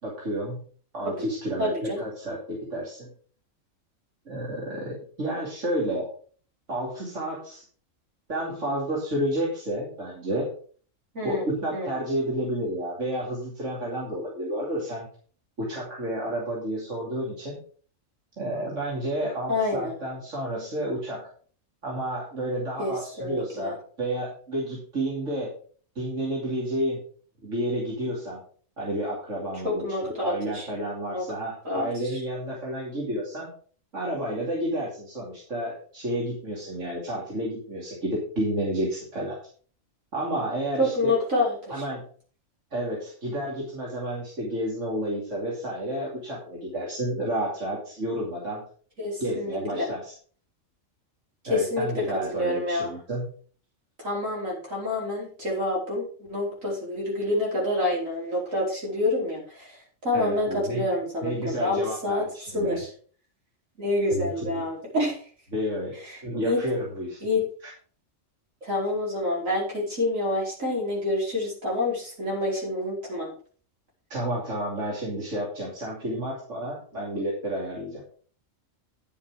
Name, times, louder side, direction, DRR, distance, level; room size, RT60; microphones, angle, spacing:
voice 1, 0.0-0.6 0.9-3.1 4.3-6.1 6.7-7.6 8.3-10.5 11.2-15.1 15.6-17.6 18.4-21.2 21.8-25.5 25.9-27.0 27.4-28.4 28.8-29.9 30.2-33.5 33.9-39.4 40.1-41.1 41.7-42.1 42.7-48.6 49.2-50.1 51.5-53.3 60.1-60.9 61.2-62.8 64.1-64.5 65.5-65.9 66.2-67.2 67.6-67.7 74.1-78.0, right 1 dB, 70° right, -4 dB, 3.2 m, -30 dB
voice 2, 1.6-2.1 11.1-11.4 11.7-11.9 19.5-19.9 22.8-23.7 29.6-30.7 31.1-31.3 31.6-32.2 40.8-41.8 49.0-49.9 51.4-52.9 54.0-62.2 62.5-62.9 63.8-65.2 66.0-66.6 67.2-67.4 68.6-73.3, left 2 dB, 90° right, -3 dB, 5.1 m, -28 dB
10.0 x 7.5 x 4.9 m, 0.43 s
omnidirectional pair, 1.3 m